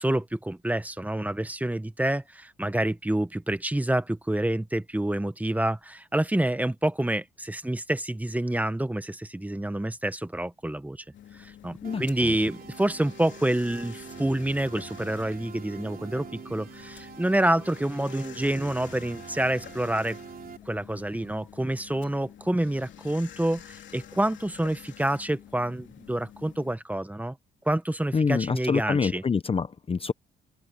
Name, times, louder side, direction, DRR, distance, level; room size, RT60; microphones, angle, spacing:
voice 1, 0.0-11.0 11.4-20.2 20.7-27.4 27.6-29.2, right 1 dB, 10° right, 1.2 m, -28 dB
sound 1, 11.1-26.8, left 10 dB, 70° left, 3.0 m, -48 dB
voice 2, 11.8-12.3 28.1-30.1, left 5 dB, 30° left, 0.7 m, -26 dB
sound 2, 11.8-20.6, right 7 dB, 50° right, 3.2 m, -45 dB
cardioid pair, 90°, 20 cm